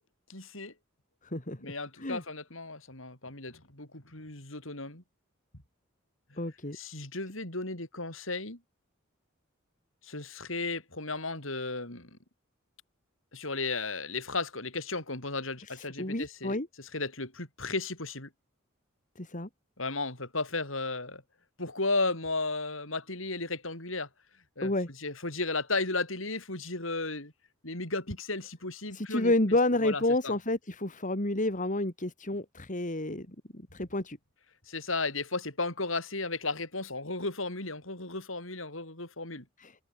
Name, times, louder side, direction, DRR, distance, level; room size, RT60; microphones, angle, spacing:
voice 1, 0.3-0.7 1.6-5.0 6.7-8.6 10.0-12.2 13.3-16.6 16.9-18.3 19.8-21.2 21.6-24.1 24.6-24.7 25.0-27.3 27.6-29.3 29.8-30.3 34.7-39.4, left 3 dB, 70° left, 7.9 m, -34 dB
voice 2, 1.2-1.6 2.0-2.2 6.4-6.8 16.0-16.7 19.2-19.5 24.6-24.9 28.9-34.2 39.6-39.7, left 1 dB, 40° left, 3.5 m, -30 dB
head